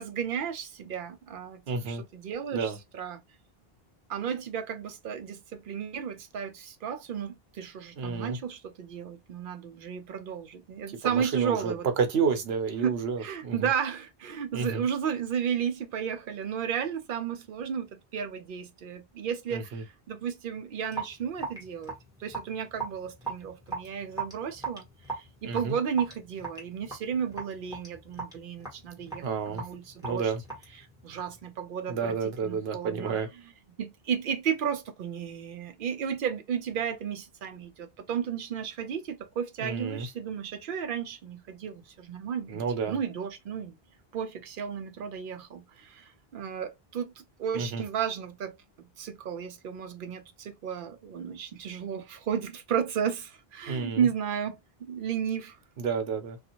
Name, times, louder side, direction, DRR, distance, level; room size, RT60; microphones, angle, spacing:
voice 1, 0.0-1.6 1.9-3.2 4.1-11.9 12.8-21.9 22.2-24.9 25.2-30.3 30.8-32.2 32.4-33.2 33.8-43.7 44.1-47.1 47.4-54.6 54.9-55.6, right 8 dB, 65° right, 0.7 m, -33 dB
voice 2, 1.7-2.0 2.5-2.8 8.0-8.4 10.9-13.7 14.5-14.8 19.5-19.8 25.4-25.8 29.2-29.6 30.0-30.4 31.9-33.3 39.6-40.1 42.5-43.0 47.5-47.8 53.7-54.1 55.8-56.4, right 5 dB, 80° right, 0.9 m, -30 dB
Raindrop / Drip, 20.9-31.4, right 4 dB, 5° right, 1.3 m, -39 dB
2.6 x 2.4 x 2.8 m
omnidirectional pair, 1.0 m